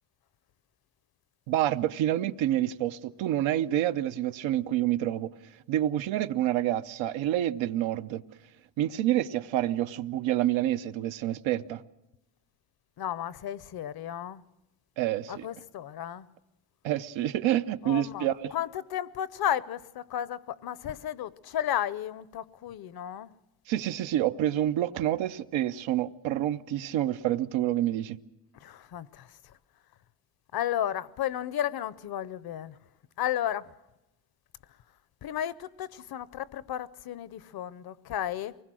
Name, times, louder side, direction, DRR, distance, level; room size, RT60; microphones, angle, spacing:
voice 1, 1.5-8.2 8.8-11.8 15.0-15.5 16.8-18.5 23.7-28.2, right 13 dB, 85° right, 0.8 m, -28 dB
voice 2, 13.0-14.4 15.3-16.3 17.8-23.3 28.6-29.5 30.5-32.8 33.2-33.7 35.2-38.6, left 11 dB, 55° left, 0.7 m, -33 dB
24.0 x 20.0 x 6.2 m
cardioid pair, 110°, 45 cm